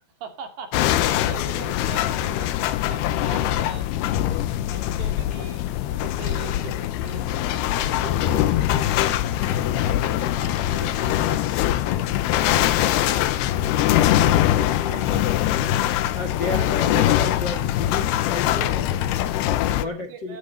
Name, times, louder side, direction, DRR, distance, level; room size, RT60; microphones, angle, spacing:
voice 1, 0.2-3.9 4.2-5.6 5.9-8.9 9.2-11.6 19.2-20.4, right 6 dB, 85° right, 5 dB, 4.8 m, -41 dB
sound 1, 0.7-19.8, left 12 dB, 80° left, 2.8 m, -22 dB
voice 2, 14.1-19.1 19.8-20.4, left 2 dB, 45° left, 4 dB, 1.4 m, -33 dB
14.5 x 11.0 x 5.6 m, 0.35 s
omnidirectional pair, 4.9 m